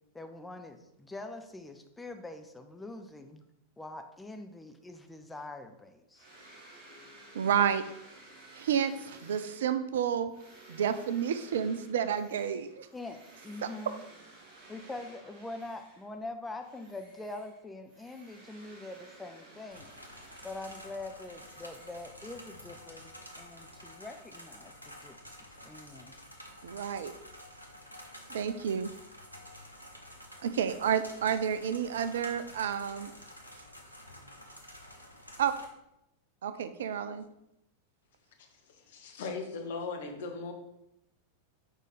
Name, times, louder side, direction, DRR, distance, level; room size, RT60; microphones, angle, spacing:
voice 1, 0.1-3.4 3.8-6.3 12.9-14.0 14.7-19.9 20.4-25.2 25.6-26.2, left 2 dB, 10° left, 6 dB, 0.6 m, -44 dB
sound 1, 6.1-16.2 16.6-22.6, right 2 dB, 40° right, 2.4 m, -55 dB
voice 2, 7.3-7.8 8.5-10.3 10.7-12.9 13.6-13.7 26.6-27.1 28.3-28.9 30.4-33.1 35.4-35.5 36.4-37.3, right 8 dB, 60° right, 11 dB, 0.5 m, -30 dB
sound 2, 19.7-35.6, equal, 90° left, 0.8 m, -50 dB
voice 3, 38.7-40.5, left 4 dB, 55° left, 4 dB, 1.1 m, -38 dB
6.4 x 4.9 x 4.1 m, 0.83 s
figure-of-eight pair, 90°, 0 cm